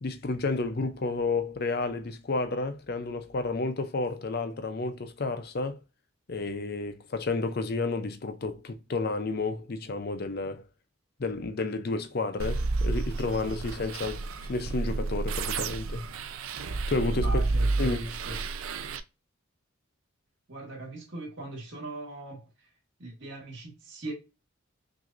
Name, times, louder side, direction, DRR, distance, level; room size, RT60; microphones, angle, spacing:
voice 1, 0.0-5.8 6.3-10.6 11.2-16.0 16.9-17.3 17.8-18.0, left 3 dB, 45° left, 0.5 m, -31 dB
sound 1, 12.4-19.0, right 3 dB, 75° right, 0.5 m, -30 dB
voice 2, 17.2-18.5 20.5-22.7 23.0-24.1, right 1 dB, 55° right, 1.7 m, -39 dB
6.0 x 2.7 x 2.5 m
head